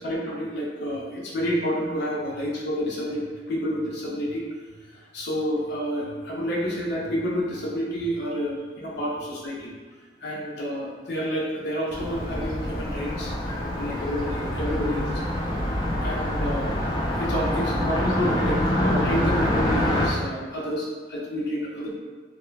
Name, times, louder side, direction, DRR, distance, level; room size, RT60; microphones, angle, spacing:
voice 1, 0.0-3.2 3.5-4.5 5.1-9.7 10.2-15.2 16.0-16.7 17.2-22.0, equal, 65° left, -5 dB, 0.7 m, -29 dB
Car passing by, 11.9-20.1, left 1 dB, 25° left, 0.4 m, -26 dB
2.3 x 2.2 x 3.1 m, 1.4 s
head